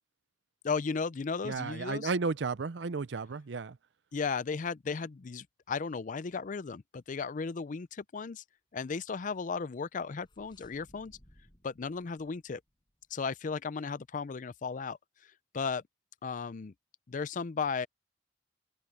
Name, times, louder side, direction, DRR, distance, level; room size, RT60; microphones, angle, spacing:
voice 1, 0.6-2.1 4.1-8.4 8.7-11.2 11.6-12.6 13.1-15.0 15.5-15.8 16.2-16.7 17.1-17.9, left 5 dB, 45° left, 0.5 m, -35 dB
voice 2, 1.4-3.8, right 4 dB, 80° right, 0.6 m, -33 dB
sound 1, 9.8-13.3, equal, 25° left, 5.5 m, -63 dB
open air
head